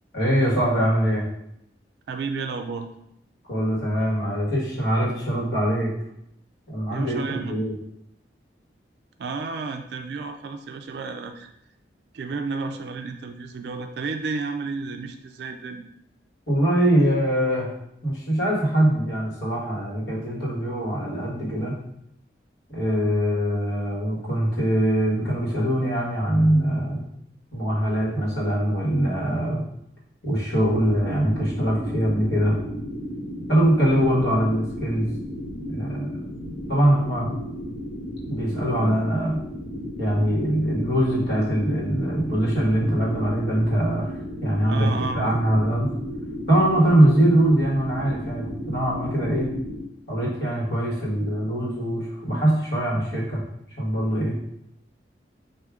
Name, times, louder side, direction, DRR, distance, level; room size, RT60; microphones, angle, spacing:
voice 1, 0.1-1.2 3.5-5.9 6.7-7.7 16.5-17.7 18.0-21.7 22.7-27.0 27.5-29.6 30.2-32.6 33.5-35.1 35.7-36.1 36.7-37.3 38.3-39.4 40.0-44.1 44.4-44.9 45.1-45.9 46.5-49.5 50.1-53.4 53.8-54.4, right 1 dB, 70° left, -5 dB, 1.5 m, -22 dB
voice 2, 2.1-2.9 6.9-7.5 9.2-11.5 12.1-15.8 38.3-38.4 44.7-45.4, right 4 dB, 70° right, 6 dB, 0.3 m, -32 dB
sound 1, 30.5-49.8, equal, 45° left, 1.6 m, -34 dB
4.8 x 2.6 x 3.6 m, 0.77 s
head